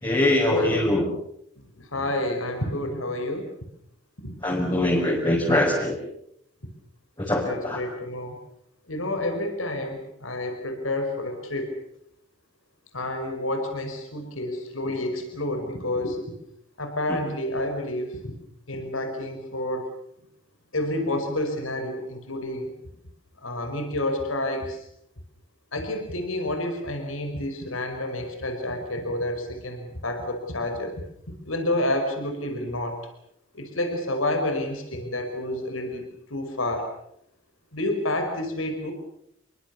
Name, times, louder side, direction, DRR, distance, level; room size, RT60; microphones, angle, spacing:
voice 1, 0.0-1.0 4.4-6.0 7.2-7.8 17.1-17.2, left 1 dB, 20° left, -3 dB, 5.8 m, -23 dB
voice 2, 1.8-3.5 4.2-4.4 7.3-8.4 8.9-11.7 12.9-16.4 16.8-18.3 18.7-19.9 20.7-22.7 23.4-24.8 25.7-31.0 31.4-33.0 33.5-36.0 36.3-36.9 37.7-38.9, left 1 dB, 85° left, 6 dB, 5.4 m, -29 dB
29.5 x 23.5 x 7.1 m, 0.74 s
head